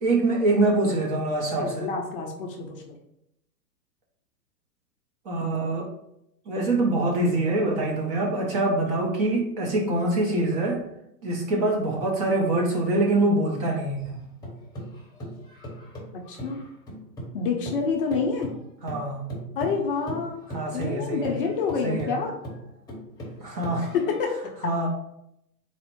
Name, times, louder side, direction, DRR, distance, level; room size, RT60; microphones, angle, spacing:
voice 1, 0.0-1.9 5.3-5.9 6.5-10.8 11.2-14.2 18.8-19.2 20.5-21.3 21.8-22.1 23.4-24.0 24.6-24.9, right 2 dB, 25° right, -1 dB, 0.6 m, -24 dB
voice 2, 1.6-3.0 16.3-16.6 17.3-18.5 19.5-20.4 20.7-22.4 23.9-24.4, left 5 dB, 35° left, 1 dB, 0.6 m, -27 dB
sound 1, 14.0-17.4 17.6-24.3, right 1 dB, 5° left, 0.8 m, -38 dB
4.2 x 2.0 x 4.4 m, 0.79 s
hypercardioid pair, 120°, 50 cm